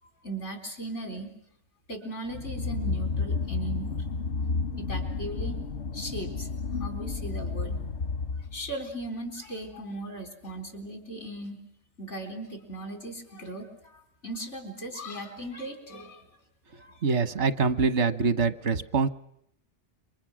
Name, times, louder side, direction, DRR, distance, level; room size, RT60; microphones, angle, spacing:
voice 1, 0.2-1.3 1.9-4.2 4.8-5.6 5.9-6.5 6.8-7.8 8.5-11.6 12.0-16.2 16.7-17.0, right 1 dB, 90° left, 5 dB, 4.5 m, -38 dB
sound 1, 2.3-8.8, left 4 dB, 70° left, 1.4 m, -31 dB
voice 2, 17.0-19.1, right 4 dB, 80° right, 13 dB, 1.5 m, -24 dB
28.0 x 25.0 x 6.3 m, 0.74 s
omnidirectional pair, 1.2 m